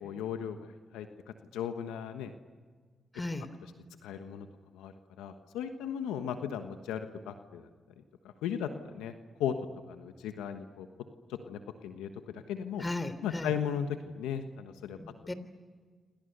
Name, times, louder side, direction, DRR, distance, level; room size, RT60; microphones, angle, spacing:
voice 1, 0.0-0.7 0.9-1.1 1.5-2.3 4.0-4.5 4.7-7.7 8.4-9.1 9.4-9.5 9.9-10.9 11.3-12.8 13.2-15.0, left 8 dB, 90° left, 7 dB, 1.3 m, -36 dB
voice 2, 3.1-3.5 12.8-13.5 15.0-15.3, left 2 dB, 25° left, 13 dB, 3.3 m, -36 dB
27.5 x 27.0 x 6.8 m, 1.5 s
supercardioid pair, 45°, 0 cm